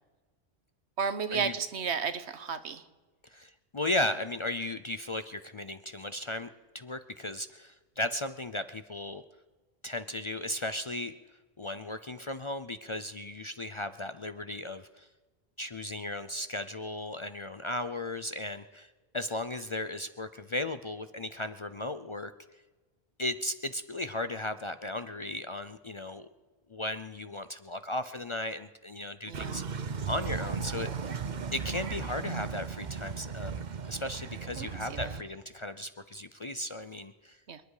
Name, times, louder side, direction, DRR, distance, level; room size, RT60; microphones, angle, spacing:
voice 1, 1.0-2.8 29.3-29.6 34.6-35.2 37.5-37.6, right 6 dB, 80° right, 11 dB, 1.3 m, -33 dB
voice 2, 3.2-6.5 6.7-9.2 9.8-11.1 11.6-15.1 15.6-22.3 23.2-26.3 26.7-31.2 31.5-37.4, left 1 dB, 35° left, 11 dB, 0.5 m, -36 dB
sound 1, 29.3-35.2, right 6 dB, 45° right, 0.8 m, -36 dB
27.0 x 10.5 x 4.9 m, 1.3 s
omnidirectional pair, 1.1 m